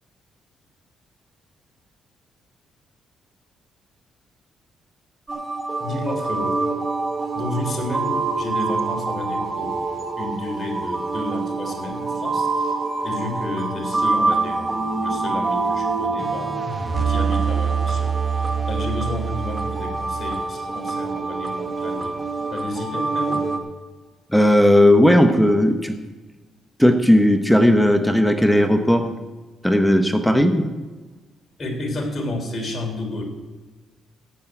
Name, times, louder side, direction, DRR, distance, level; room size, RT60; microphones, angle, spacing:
sound 1, 5.3-23.6, right 4 dB, 30° right, 1.7 m, -25 dB
voice 1, 5.8-6.6 7.3-9.9 10.2-16.7 17.1-22.2 22.5-23.5 31.6-33.2, left 2 dB, 40° left, 2 dB, 3.5 m, -31 dB
voice 2, 24.3-25.9 26.8-29.1 29.6-30.7, left 1 dB, ahead, 6 dB, 1.0 m, -16 dB
15.0 x 5.5 x 9.2 m, 1.3 s
cardioid pair, 90°, 0 cm